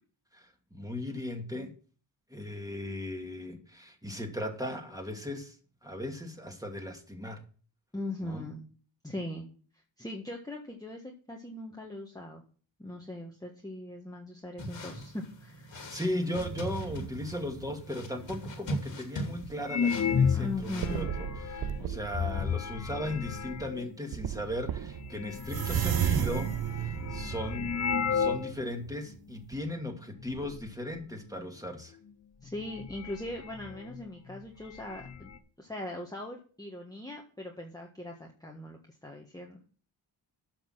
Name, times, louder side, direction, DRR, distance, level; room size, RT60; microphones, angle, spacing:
voice 1, 0.3-1.7 2.3-5.6 5.8-7.4 8.2-8.5 15.9-27.7 28.1-32.0, left 1 dB, 5° right, 2 dB, 2.4 m, -37 dB
voice 2, 7.9-8.7 9.0-9.5 10.0-12.4 12.8-15.8 20.3-21.1 32.4-35.3 35.6-39.6, left 1 dB, 10° left, -1 dB, 1.6 m, -40 dB
sound 1, 14.6-21.0, equal, 65° left, 2.6 m, -41 dB
sound 2, 16.3-18.5 19.0-19.7 20.2-20.3 20.8-22.4 23.1-23.4 23.8-23.9 24.1-29.2 29.5-29.6, right 11 dB, 50° right, 0.6 m, -35 dB
sound 3, 18.2-18.3 18.9-19.0 19.6-23.9 24.7-24.8 25.0-28.5 28.8-28.9 29.6-29.9 30.2-30.7 31.9-32.0 32.5-34.0 34.3-34.4 34.6-35.4, left 6 dB, 35° left, 0.9 m, -33 dB
8.9 x 5.9 x 5.9 m, 0.41 s
cardioid pair, 55°, 48 cm